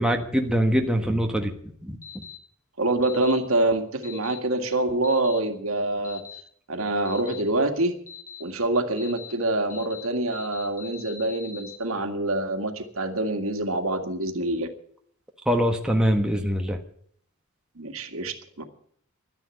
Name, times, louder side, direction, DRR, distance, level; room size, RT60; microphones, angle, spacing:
voice 1, 0.0-1.5 1.8-2.0 15.5-16.8, equal, 5° right, 2 dB, 1.4 m, -23 dB
sound 1, 2.0-2.3 3.0-3.3 4.0-4.3 5.0-5.3 6.0-6.4 7.1-7.4 8.1-8.4 9.0-9.3 9.7-10.0 10.3-11.7, left 6 dB, 40° left, 3.9 m, -42 dB
voice 2, 2.8-6.2 6.7-7.9 8.4-14.7 17.8-18.6, right 2 dB, 75° right, 6 dB, 2.0 m, -26 dB
12.0 x 10.5 x 9.6 m, 0.62 s
head